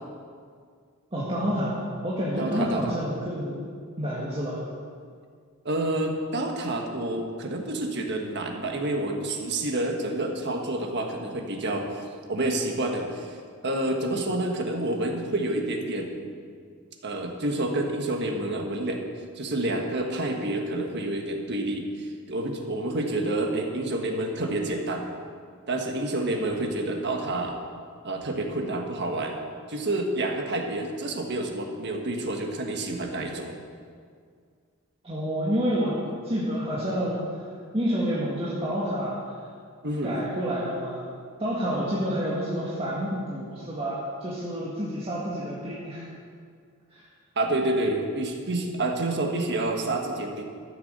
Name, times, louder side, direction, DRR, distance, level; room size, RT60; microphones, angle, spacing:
voice 1, 1.1-3.7 4.0-4.6 35.0-36.0 36.2-37.5 37.7-39.2 40.0-41.0 41.4-46.1 46.9-47.1, equal, 25° right, -8 dB, 1.8 m, -29 dB
voice 2, 2.4-2.9 5.6-13.4 13.6-16.3 17.0-19.0 19.3-25.1 25.7-27.6 28.0-29.4 29.7-33.5 39.8-40.2 47.3-50.4, right 1 dB, 55° right, 2 dB, 1.5 m, -28 dB
13.5 x 7.2 x 6.7 m, 2.1 s
head